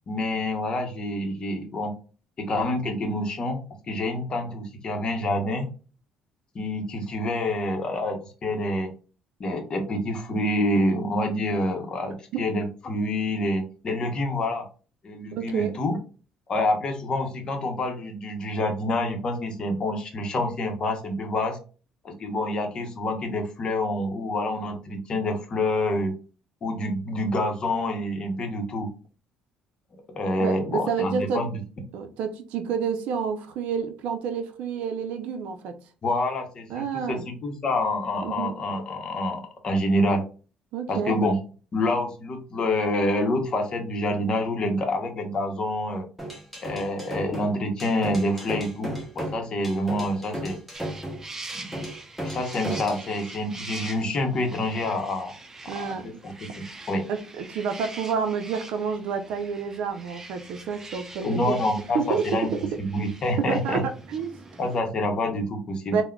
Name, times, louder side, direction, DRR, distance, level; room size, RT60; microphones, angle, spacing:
voice 1, 0.0-1.9 2.4-5.7 6.5-8.9 9.4-14.7 15.0-16.0 16.5-21.6 22.0-26.1 26.6-28.9 30.1-31.5 36.0-40.2 40.9-41.4 41.7-46.1 46.6-50.6 51.5-51.7 52.2-55.3 55.7-57.0 61.2-62.5 62.8-63.8 64.6-66.0, left 1 dB, 40° left, 0.8 m, -27 dB
voice 2, 15.4-15.8 30.4-31.5 31.9-35.8 36.7-37.2 38.2-38.6 40.7-41.2 55.7-56.2 57.1-61.6 61.9-62.8 63.5-64.4 65.9-66.0, right 6 dB, 80° right, 0.5 m, -29 dB
sound 1, 46.2-53.1, equal, ahead, 0.9 m, -35 dB
sound 2, 50.7-64.8, right 2 dB, 20° right, 0.5 m, -43 dB
3.6 x 2.1 x 2.2 m
cardioid pair, 110°, 2 cm